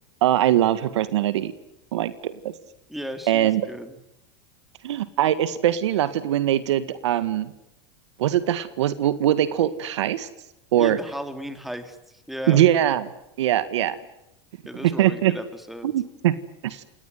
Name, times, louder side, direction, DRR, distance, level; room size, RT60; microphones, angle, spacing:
voice 1, 0.2-1.5 1.9-2.5 3.3-3.7 4.8-7.5 8.2-10.3 10.7-11.0 12.5-13.1 13.4-14.0 14.8-15.3 15.8-16.3 16.6-16.8, right 12 dB, 80° right, 14 dB, 1.8 m, -22 dB
voice 2, 2.9-4.0 10.8-12.6 14.6-15.9, equal, ahead, 8 dB, 3.3 m, -35 dB
29.0 x 18.5 x 9.4 m, 0.86 s
hypercardioid pair, 110°, 15 cm